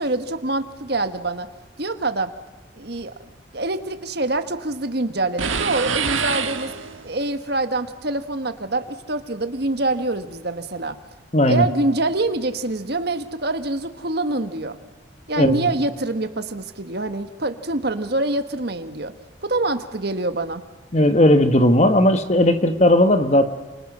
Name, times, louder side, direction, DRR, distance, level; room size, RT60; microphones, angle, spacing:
voice 1, 0.0-1.5 1.8-2.3 2.8-3.1 3.5-6.7 7.0-11.0 11.4-14.8 15.3-19.1 19.4-20.6, right 2 dB, 55° right, 9 dB, 1.5 m, -25 dB
sound 1, 5.4-7.2, right 6 dB, 90° right, 1.5 m, -25 dB
voice 2, 11.3-11.6 15.4-15.7 20.9-23.5, left 1 dB, 35° left, 9 dB, 1.5 m, -16 dB
29.5 x 27.5 x 6.2 m, 1.3 s
head